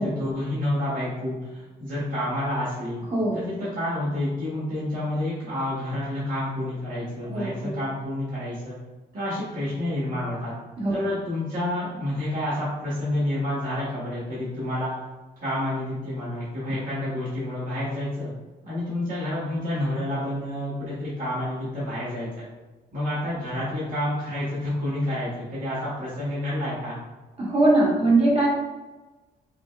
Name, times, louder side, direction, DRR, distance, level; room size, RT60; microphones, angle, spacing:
voice 1, 0.0-3.0 3.3-8.8 9.1-10.5 10.9-14.9 15.4-18.3 18.6-22.4 22.9-27.0, left 1 dB, 55° right, -8 dB, 1.5 m, -29 dB
voice 2, 7.2-7.7 10.8-11.0 27.4-28.5, right 2 dB, 35° right, -4 dB, 1.4 m, -21 dB
6.3 x 2.2 x 2.4 m, 1.2 s
cardioid pair, 95°, 17 cm